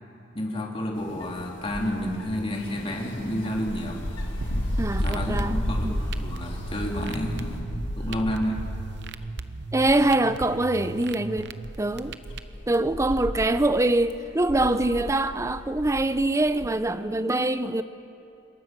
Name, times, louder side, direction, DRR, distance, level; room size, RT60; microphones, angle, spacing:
voice 1, 0.3-4.0 4.9-8.6, equal, 30° left, -1 dB, 3.3 m, -30 dB
sound 1, 0.9-9.4 9.8-10.2 10.7-10.8 11.7-16.7, left 1 dB, 70° left, 1.9 m, -33 dB
sound 2, 2.5-7.6, left 1 dB, 90° left, 6.2 m, -47 dB
sound 3, 4.4-12.4, right 3 dB, 65° right, 0.8 m, -37 dB
voice 2, 4.8-5.6 5.8-6.0 9.7-11.5 11.8-12.1 12.7-17.8, right 2 dB, 15° right, 12 dB, 0.6 m, -24 dB
27.0 x 21.5 x 6.1 m, 2.8 s
head